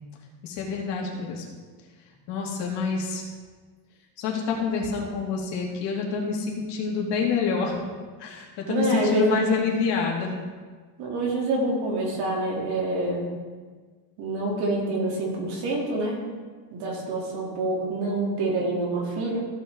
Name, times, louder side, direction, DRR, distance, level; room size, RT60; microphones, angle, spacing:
voice 1, 0.4-1.4 2.3-3.2 4.2-7.8 8.2-10.3, left 5 dB, 70° left, -1 dB, 2.5 m, -27 dB
voice 2, 8.7-9.6 11.0-13.3 14.2-16.2 16.7-19.5, right 2 dB, 65° right, -3 dB, 3.2 m, -26 dB
15.5 x 6.5 x 3.8 m, 1.5 s
cardioid pair, 165°, 42 cm